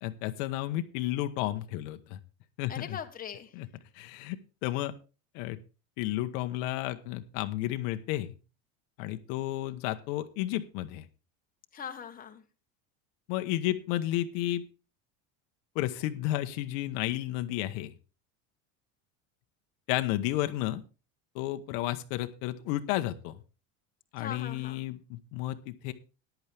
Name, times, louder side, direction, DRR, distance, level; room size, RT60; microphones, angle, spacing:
voice 1, 0.0-2.2 2.6-3.0 3.5-3.7 3.9-4.9 5.3-5.6 6.0-8.3 9.0-11.0 13.3-14.6 15.7-17.9 19.9-20.8 21.3-23.4 24.1-25.9, left 15 dB, 70° left, 8 dB, 1.1 m, -32 dB
voice 2, 2.7-3.5 11.7-12.4 24.2-24.8, left 7 dB, 20° left, 5 dB, 1.3 m, -40 dB
14.0 x 10.5 x 3.4 m, 0.32 s
supercardioid pair, 140°, 39 cm